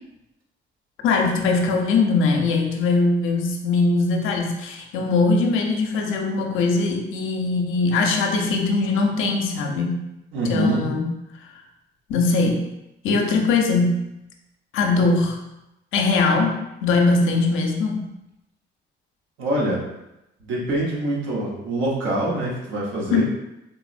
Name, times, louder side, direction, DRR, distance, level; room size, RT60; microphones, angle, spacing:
voice 1, 1.0-10.0 10.5-11.1 12.1-12.7 13.0-14.1 14.7-15.4 15.9-18.1 23.1-23.2, left 3 dB, 85° left, 2 dB, 0.5 m, -21 dB
voice 2, 10.3-10.9 19.4-19.8 20.4-23.2, right 1 dB, 75° right, -4 dB, 0.9 m, -24 dB
3.8 x 2.0 x 2.4 m, 0.91 s
cardioid pair, 90°, 20 cm